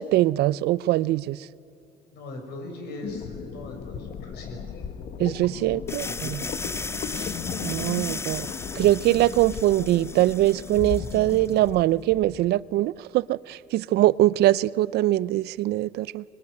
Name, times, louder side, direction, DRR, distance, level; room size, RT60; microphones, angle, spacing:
voice 1, 0.0-1.4 5.2-6.4 7.6-8.5 8.8-16.2, right 15 dB, 75° right, 0.5 m, -22 dB
voice 2, 2.1-4.9 5.7-7.4, left 1 dB, 80° left, 6.1 m, -41 dB
sound 1, 3.0-12.4, left 7 dB, 55° left, 1.2 m, -36 dB
sound 2, 5.9-11.6, left 3 dB, 15° left, 0.6 m, -36 dB
23.5 x 20.5 x 9.7 m
cardioid pair, 110°, 17 cm